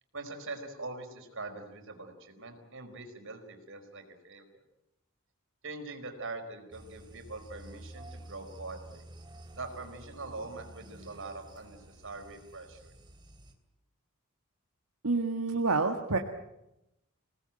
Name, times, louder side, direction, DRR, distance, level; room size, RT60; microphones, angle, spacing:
voice 1, 0.1-4.4 5.6-9.0 9.5-12.9, right 3 dB, 65° right, 5 dB, 4.6 m, -43 dB
sound 1, 6.7-13.5, right 1 dB, 20° right, 3.2 m, -50 dB
voice 2, 15.0-16.2, right 3 dB, 80° right, 3 dB, 1.8 m, -28 dB
27.0 x 18.5 x 9.0 m, 0.89 s
head